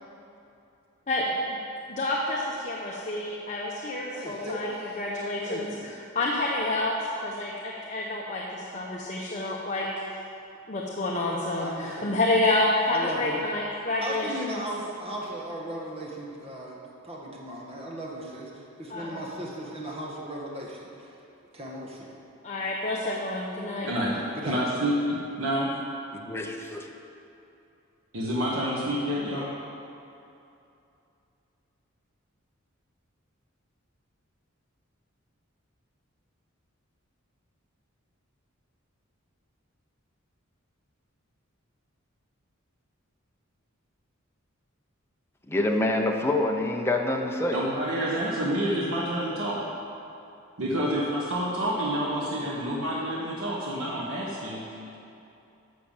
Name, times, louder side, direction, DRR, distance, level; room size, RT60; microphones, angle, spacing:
voice 1, 1.1-1.6 1.9-7.0 7.2-9.9 10.7-14.3 18.9-19.2 22.4-23.9, left 2 dB, 35° left, -3 dB, 1.0 m, -28 dB
voice 2, 4.1-5.0 5.5-5.9 11.6-12.2 12.9-13.4 14.0-16.8 17.0-21.1 21.5-22.1 24.4-24.6, right 1 dB, 30° right, -3 dB, 1.7 m, -37 dB
voice 3, 23.8-24.2 24.4-25.7 28.1-29.5 47.5-49.6 50.6-55.0, equal, 85° right, -5 dB, 1.5 m, -28 dB
voice 4, 26.1-26.9 45.5-47.6, left 2 dB, 10° left, 1 dB, 0.8 m, -26 dB
13.0 x 5.9 x 7.4 m, 2.7 s
head